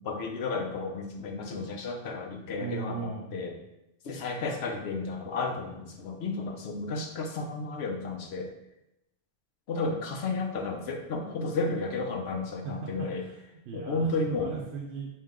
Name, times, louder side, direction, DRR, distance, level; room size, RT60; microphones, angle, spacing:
voice 1, 0.0-3.5 4.0-8.5 9.7-13.2 13.7-14.5, left 3 dB, 75° left, 3 dB, 0.9 m, -32 dB
voice 2, 2.6-3.4 12.6-15.1, right 6 dB, 85° right, 0 dB, 0.9 m, -38 dB
4.4 x 3.1 x 3.6 m, 0.89 s
omnidirectional pair, 1.1 m